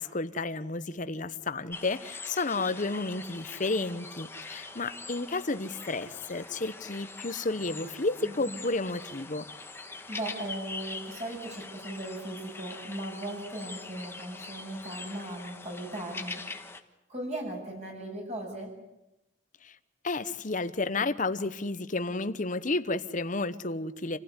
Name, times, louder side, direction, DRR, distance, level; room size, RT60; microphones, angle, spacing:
voice 1, 0.0-9.5 19.6-19.8 20.0-24.2, left 3 dB, 40° left, 12 dB, 1.0 m, -32 dB
sound 1, 1.7-16.8, left 3 dB, 15° left, 1.4 m, -43 dB
voice 2, 8.2-8.6 10.1-16.4 17.1-18.7, right 1 dB, 35° right, 1 dB, 7.4 m, -38 dB
27.5 x 16.0 x 9.7 m, 0.95 s
head